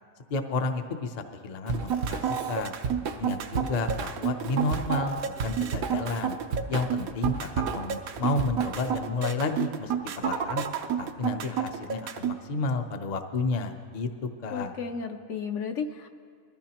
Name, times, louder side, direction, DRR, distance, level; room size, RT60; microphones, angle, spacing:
voice 1, 0.3-2.7 3.2-6.4 6.7-10.6 11.0-14.7, left 3 dB, 40° left, 5 dB, 0.6 m, -31 dB
Drum kit / Drum, 1.7-9.0, right 5 dB, 65° right, 1.0 m, -34 dB
sound 1, 1.7-12.3, right 8 dB, 85° right, 1.2 m, -30 dB
voice 2, 14.5-16.1, left 6 dB, 65° left, 5 dB, 1.0 m, -33 dB
21.0 x 14.0 x 2.9 m, 2.1 s
omnidirectional pair, 1.5 m